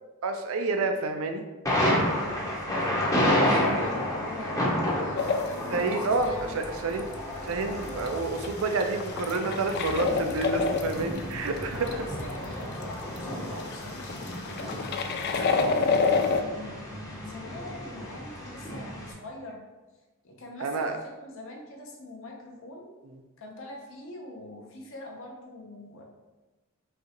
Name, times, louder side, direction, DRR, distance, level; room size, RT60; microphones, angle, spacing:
voice 1, 0.2-1.4 5.7-7.1 7.4-11.9 15.6-15.8 20.6-20.9, right 3 dB, 70° right, 6 dB, 0.5 m, -29 dB
Thunder, 1.6-19.1, left 1 dB, 15° left, 0.7 m, -31 dB
voice 2, 1.9-6.6 11.7-14.8 15.2-19.6 20.2-22.9 23.4-26.0, left 2 dB, 65° left, 0 dB, 0.9 m, -43 dB
sound 1, 5.2-5.9 6.6-7.1 7.5-7.6 7.8-11.2 11.6-11.9 12.3-12.4 12.7-13.2 13.6-16.4, left 5 dB, 45° left, 0.3 m, -28 dB
sound 2, 6.1-13.5, equal, 15° right, 0.6 m, -46 dB
5.4 x 2.4 x 2.9 m, 1.2 s
head